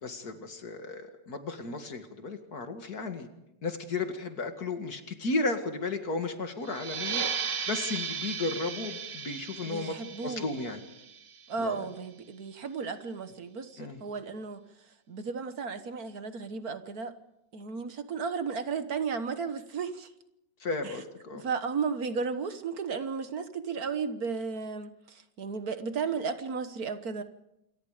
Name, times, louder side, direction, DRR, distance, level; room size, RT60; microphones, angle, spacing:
voice 1, 0.0-3.3 3.6-9.9 10.2-10.8 11.6-11.9 13.8-14.0 20.6-21.4, left 3 dB, 60° left, 6 dB, 2.6 m, -34 dB
sound 1, 6.6-11.9, right 6 dB, 85° right, 2.0 m, -36 dB
voice 2, 9.7-10.5 11.5-14.6 15.1-17.1 17.5-20.1 20.8-20.9 21.3-27.2, right 5 dB, 60° right, 10 dB, 1.8 m, -34 dB
27.5 x 23.5 x 5.1 m, 0.84 s
omnidirectional pair, 1.9 m